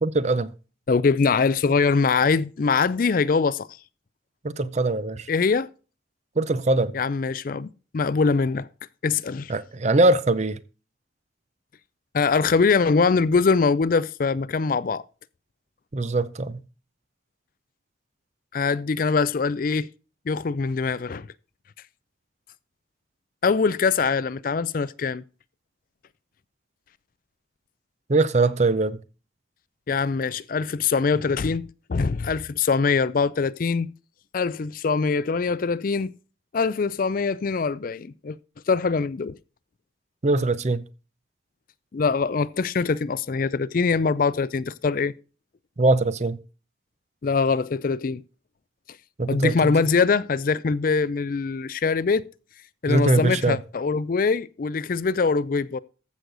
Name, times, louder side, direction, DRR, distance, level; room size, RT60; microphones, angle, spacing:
voice 1, 0.0-0.5 4.4-5.3 6.4-6.9 9.5-10.6 15.9-16.6 28.1-29.0 40.2-40.8 45.8-46.4 49.2-49.7 52.9-53.6, right 2 dB, 35° right, 0.6 m, -22 dB
voice 2, 0.9-3.7 5.3-5.7 6.9-8.7 9.0-9.5 12.1-15.0 18.5-19.9 20.3-21.3 23.4-25.2 29.9-33.9 34.3-36.1 36.5-38.4 38.7-39.4 41.9-45.1 47.2-48.2 49.3-52.3 52.8-55.8, left 4 dB, 45° left, 0.4 m, -23 dB
14.5 x 6.4 x 3.9 m
head